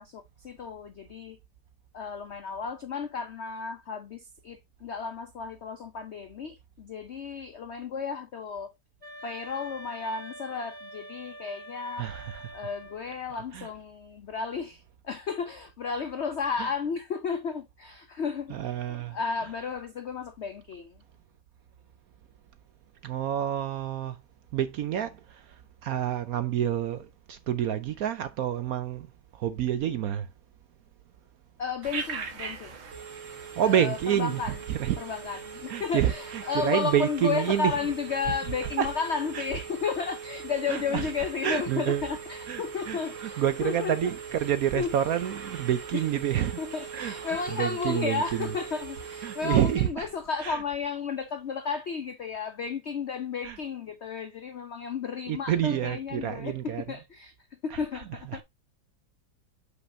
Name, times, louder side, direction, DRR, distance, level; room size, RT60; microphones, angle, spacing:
voice 1, 0.0-1.4 1.9-8.7 9.2-12.1 12.5-18.6 19.1-21.0 31.6-32.8 33.6-34.5 35.0-44.0 44.4-44.9 45.9-46.1 46.6-58.4, left 5 dB, 70° left, 0.6 m, -33 dB
sound 1, 9.0-13.2, equal, 25° right, 2.0 m, -45 dB
voice 2, 12.0-12.6 13.5-13.7 16.6-16.7 18.5-19.2 23.0-24.2 24.5-30.3 33.6-35.0 35.3-35.4 35.7-37.7 38.8-38.9 39.3-39.5 40.7-41.1 41.4-42.1 42.5-46.6 46.9-47.1 47.5-48.5 49.2-50.1 50.4-50.6 53.4-53.6 55.3-56.8 57.7-57.8, right 10 dB, 70° right, 0.9 m, -28 dB
Telephone, 31.8-49.9, right 6 dB, 85° right, 2.1 m, -41 dB
7.9 x 5.6 x 2.6 m
omnidirectional pair, 2.0 m